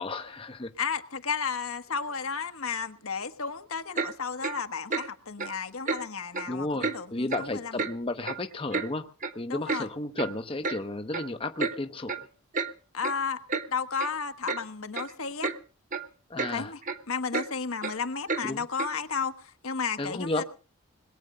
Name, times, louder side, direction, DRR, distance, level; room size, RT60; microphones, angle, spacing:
voice 1, 0.0-0.7 6.5-9.1 9.4-12.3 16.3-16.7 18.4-18.6 20.0-20.4, left 2 dB, 25° left, 0.6 m, -33 dB
voice 2, 0.8-7.9 9.5-9.9 12.9-13.4 13.7-15.5 16.5-16.8 17.1-20.4, left 5 dB, 70° left, 1.3 m, -33 dB
Clock, 3.9-4.1 4.4-4.6 4.9-5.1 5.4-5.5 5.9-6.0 6.3-6.5 6.8-7.0 7.3-7.5 7.8-7.9 8.2-8.9 9.2-9.3 9.7-9.8 10.2-10.3 10.6-10.8 11.1-11.3 11.6-11.7 12.1-12.2 12.5-12.7 13.0-13.2 13.5-13.7 14.0-14.1 14.5-14.6 14.9-15.1 15.4-15.6 15.9-16.0 16.4-16.5 16.8-17.0 17.3-17.5 17.8-17.9 18.3-18.4 18.8-18.9, right 4 dB, 35° right, 1.0 m, -30 dB
20.5 x 8.9 x 6.5 m
head